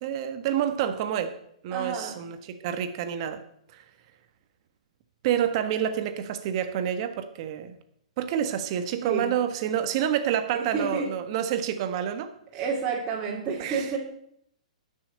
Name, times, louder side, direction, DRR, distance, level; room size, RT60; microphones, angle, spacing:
voice 1, 0.0-1.3 1.6-3.4 3.7-3.8 5.2-7.7 8.2-12.3 13.6-13.9, right 9 dB, 45° right, 8 dB, 1.4 m, -28 dB
voice 2, 1.7-2.2 9.0-9.3 10.5-11.1 12.5-14.0, right 5 dB, 25° right, -5 dB, 2.7 m, -30 dB
10.5 x 6.3 x 7.7 m, 0.71 s
hypercardioid pair, 120°, 4 cm